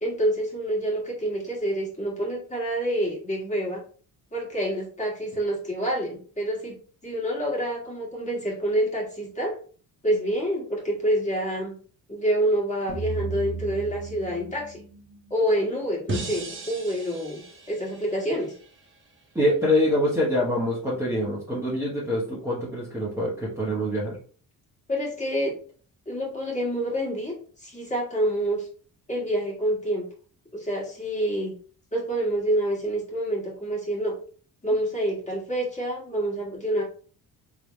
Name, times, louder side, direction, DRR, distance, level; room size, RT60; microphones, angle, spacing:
voice 1, 0.0-3.8 4.3-6.8 7.0-9.5 10.0-11.7 12.1-14.8 15.3-17.4 17.7-18.5 24.9-25.5 26.1-27.3 27.6-28.7 29.1-30.0 30.5-31.5 31.9-34.1 34.6-36.8, right 1 dB, 20° left, -4 dB, 1.6 m, -27 dB
sound 1, 12.9-16.1, right 4 dB, 60° right, 1.1 m, -36 dB
sound 2, 16.1-19.2, right 3 dB, 35° right, 0.9 m, -37 dB
voice 2, 19.3-24.2, left 1 dB, 5° right, -7 dB, 1.0 m, -25 dB
3.4 x 2.9 x 3.0 m, 0.43 s
cardioid pair, 130°, 36 cm